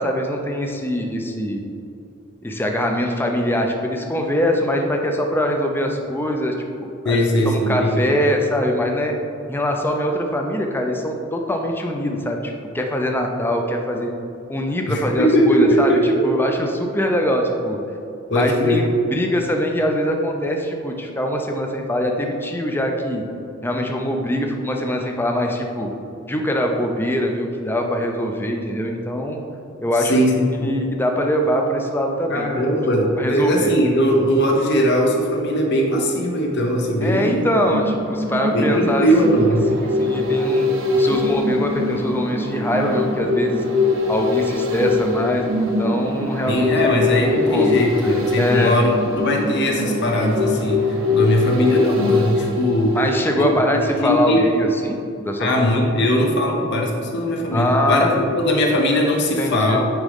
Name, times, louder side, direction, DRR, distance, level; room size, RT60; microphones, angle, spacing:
voice 1, 0.0-1.7 2.4-6.5 6.8-9.1 9.5-14.1 14.5-17.8 18.3-23.2 23.6-25.9 26.3-29.4 29.8-30.1 30.6-32.5 33.2-33.7 37.0-39.1 39.7-43.6 44.1-47.0 47.3-47.8 48.4-48.8 53.0-55.7 57.5-58.2 59.4-59.8, equal, 10° left, 2 dB, 0.5 m, -23 dB
voice 2, 7.0-8.1 14.9-16.3 18.3-18.9 30.0-30.8 32.3-37.5 38.5-39.7 46.5-53.0 53.4-54.5 55.4-59.8, equal, 60° left, 1 dB, 1.0 m, -19 dB
sound 1, 37.4-53.6 54.0-54.1, left 3 dB, 75° right, 0.9 m, -23 dB
9.0 x 3.6 x 3.6 m, 2.6 s
head